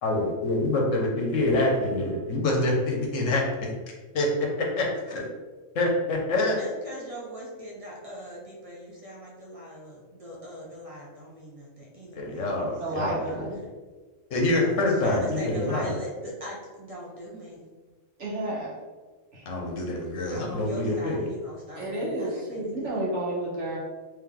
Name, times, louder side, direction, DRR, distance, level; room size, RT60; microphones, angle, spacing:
voice 1, 0.0-3.4 4.1-5.3 5.7-6.6 12.1-13.5 14.3-16.0 19.5-21.2, left 2 dB, 75° left, 0 dB, 1.2 m, -26 dB
voice 2, 6.5-12.6 14.6-17.7 20.3-22.9, equal, 35° right, -4 dB, 0.7 m, -41 dB
voice 3, 12.8-13.6 18.2-18.7 19.3-19.4 21.7-23.8, right 1 dB, 65° right, -5 dB, 1.5 m, -31 dB
3.3 x 3.2 x 3.7 m, 1.3 s
omnidirectional pair, 1.3 m